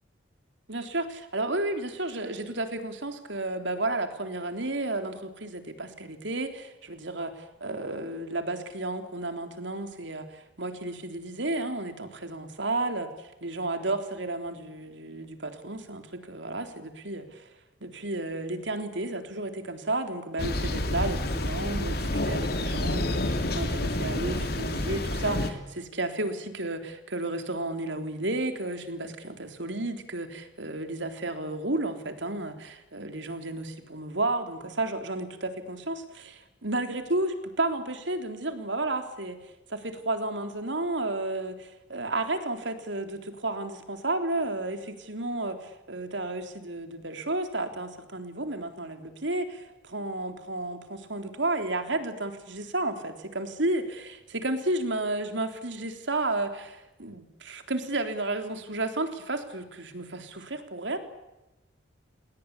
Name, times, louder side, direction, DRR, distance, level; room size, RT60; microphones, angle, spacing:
voice 1, 0.7-13.1 13.4-17.5 17.8-61.0, right 2 dB, 70° right, 7 dB, 3.6 m, -32 dB
Thunder, 20.4-25.5, left 1 dB, 50° left, 3.0 m, -29 dB
29.0 x 20.0 x 8.4 m, 0.99 s
head